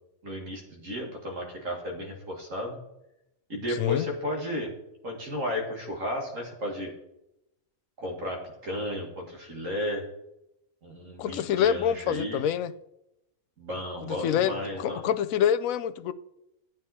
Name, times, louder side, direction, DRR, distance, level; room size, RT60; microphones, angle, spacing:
voice 1, 0.2-2.8 3.5-4.7 5.0-6.9 8.0-10.0 10.8-12.4 13.6-15.0, left 1 dB, 65° right, 2.3 m, -33 dB
voice 2, 11.2-12.7 14.0-16.1, left 9 dB, 75° left, 1.0 m, -26 dB
13.0 x 9.1 x 4.2 m
omnidirectional pair, 1.5 m